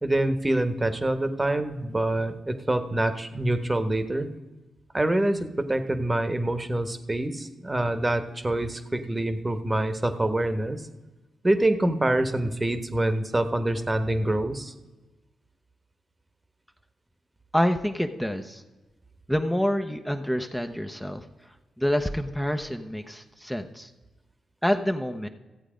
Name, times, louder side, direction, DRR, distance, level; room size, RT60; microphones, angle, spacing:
voice 1, 0.0-4.3 4.9-10.8 11.4-14.7, right 1 dB, 20° right, 9 dB, 1.3 m, -26 dB
voice 2, 17.5-18.6 19.3-21.2 21.8-23.9 24.6-25.3, equal, 5° left, 5 dB, 0.9 m, -27 dB
14.0 x 8.1 x 5.1 m, 1.2 s
supercardioid pair, 50°, 0 cm